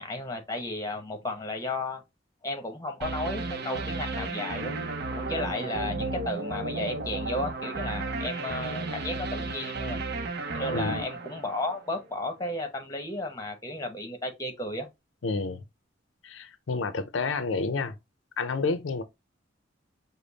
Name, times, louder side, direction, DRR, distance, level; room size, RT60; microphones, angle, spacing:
voice 1, 0.0-2.0 2.4-10.0 10.5-14.9, left 2 dB, 20° left, 0.9 m, -34 dB
sound 1, 3.0-12.1, right 3 dB, 60° right, 0.7 m, -33 dB
voice 2, 15.2-15.6 16.2-17.9 18.4-19.0, left 4 dB, 85° left, 0.5 m, -29 dB
5.1 x 2.1 x 3.9 m
head